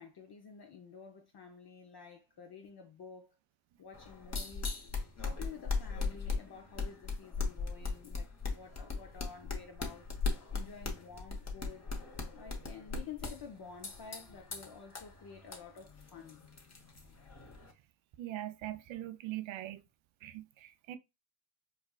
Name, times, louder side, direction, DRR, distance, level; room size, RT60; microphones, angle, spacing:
voice 1, 0.0-3.4 3.8-4.8 5.2-11.8 12.3-16.4, left 6 dB, 50° left, 0.8 m, -51 dB
sound 1, 3.9-17.7, left 4 dB, 30° left, 1.1 m, -39 dB
voice 2, 18.2-19.8 20.2-21.0, right 14 dB, 70° right, 0.6 m, -41 dB
4.6 x 2.3 x 2.3 m
supercardioid pair, 50°, 50 cm